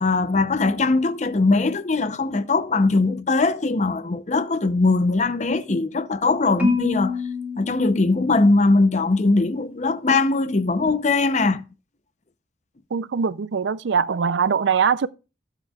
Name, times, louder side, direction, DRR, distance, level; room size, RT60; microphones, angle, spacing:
voice 1, 0.0-7.2 7.6-11.6, left 3 dB, 40° left, 0.6 m, -20 dB
Marimba xylophone, 6.6-8.8, left 4 dB, 10° right, 2.2 m, -27 dB
voice 2, 12.9-15.1, right 6 dB, 70° right, 0.4 m, -22 dB
19.0 x 8.1 x 2.3 m
head